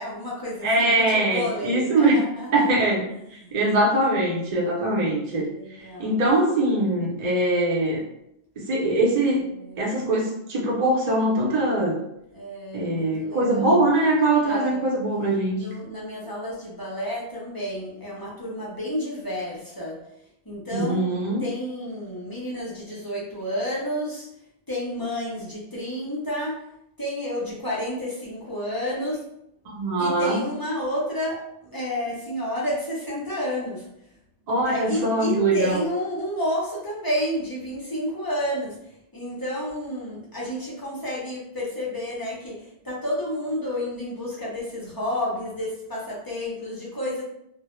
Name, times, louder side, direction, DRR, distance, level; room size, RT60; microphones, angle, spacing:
voice 1, 0.0-2.9 3.3-3.5 5.4-6.2 9.4-10.0 12.3-13.7 14.4-14.9 15.5-20.0 20.5-21.1 21.4-24.3 24.7-26.6 27.0-29.2 30.0-33.9 34.6-38.8 39.1-47.2, equal, 35° left, -6 dB, 0.4 m, -30 dB
voice 2, 0.6-2.2 2.5-3.0 3.5-5.5 6.0-8.0 8.6-9.4 9.8-12.0 12.7-15.6 20.7-21.4 29.7-30.4 34.5-35.8, right 2 dB, 45° right, -3 dB, 0.6 m, -22 dB
2.1 x 2.0 x 2.9 m, 0.79 s
omnidirectional pair, 1.2 m